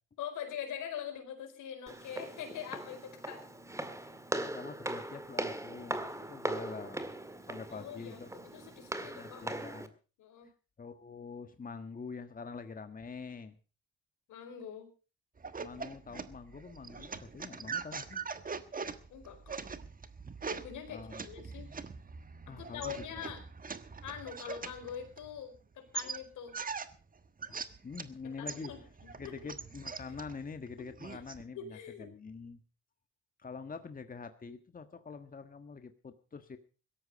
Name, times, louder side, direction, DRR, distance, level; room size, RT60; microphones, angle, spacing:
voice 1, 0.2-3.4 7.7-8.2 8.5-9.5 10.2-10.5 14.3-14.9 19.1-19.6 20.5-21.7 22.5-23.4 24.0-26.6 28.4-29.5 30.8-31.2 31.5-32.1, left 9 dB, 85° left, 6 dB, 4.6 m, -44 dB
Walk footsteps, 1.9-9.9, right 1 dB, 10° right, 2.0 m, -40 dB
voice 2, 4.4-7.1 7.5-8.3 9.1-9.9 10.8-13.6 15.6-18.2 20.9-21.2 22.5-23.2 27.5-28.7 29.1-32.6 33.4-36.6, left 5 dB, 30° left, 8 dB, 1.5 m, -45 dB
sound 1, 15.4-25.6 25.9-28.1 28.5-31.4, right 5 dB, 30° right, 1.4 m, -42 dB
17.0 x 13.5 x 5.3 m, 0.36 s
cardioid pair, 90°, 30 cm